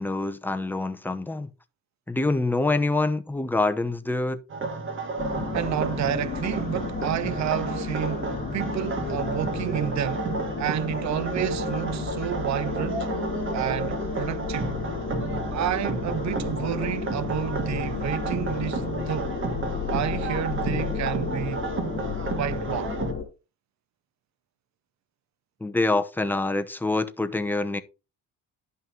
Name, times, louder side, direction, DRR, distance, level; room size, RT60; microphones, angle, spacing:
voice 1, 0.0-1.5 2.1-4.4 25.6-27.8, left 2 dB, 5° left, 0.8 m, -26 dB
sound 1, 4.5-23.1, right 3 dB, 40° right, 1.8 m, -32 dB
sound 2, 5.2-23.2, left 4 dB, 25° left, 2.7 m, -32 dB
voice 2, 5.5-10.3 10.6-13.1 13.5-14.8 15.5-19.4 19.9-21.6 22.4-22.9, right 11 dB, 55° right, 0.8 m, -30 dB
11.0 x 5.6 x 3.7 m
cardioid pair, 115°, 33 cm